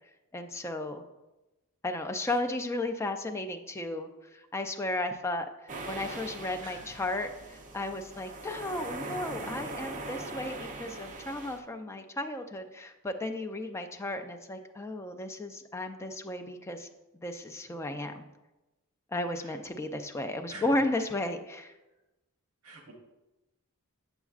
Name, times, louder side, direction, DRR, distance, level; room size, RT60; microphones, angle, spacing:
voice 1, 0.3-1.0 1.8-16.9 17.1-18.2 19.1-21.7, left 2 dB, 10° left, 5 dB, 0.4 m, -34 dB
sound 1, 5.7-11.6, right 2 dB, 35° right, 0.6 m, -41 dB
voice 2, 6.6-7.0 19.4-19.6 20.5-21.1 22.6-22.9, right 2 dB, 65° right, 2 dB, 1.0 m, -47 dB
7.9 x 7.1 x 2.4 m, 1.0 s
head